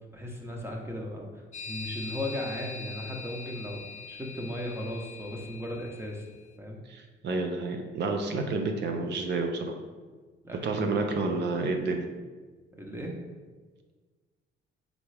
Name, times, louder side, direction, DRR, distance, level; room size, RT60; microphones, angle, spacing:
voice 1, 0.1-1.3 1.7-3.8 4.1-6.2 6.6-6.8 10.4-11.2 12.8-13.1, left 1 dB, 10° right, 0 dB, 0.8 m, -36 dB
sound 1, 1.5-6.2, left 4 dB, 35° left, 0.4 m, -42 dB
voice 2, 6.9-9.8 10.6-12.1, right 3 dB, 60° right, 4 dB, 0.6 m, -30 dB
3.8 x 3.5 x 3.3 m, 1.4 s
cardioid pair, 90°, 20 cm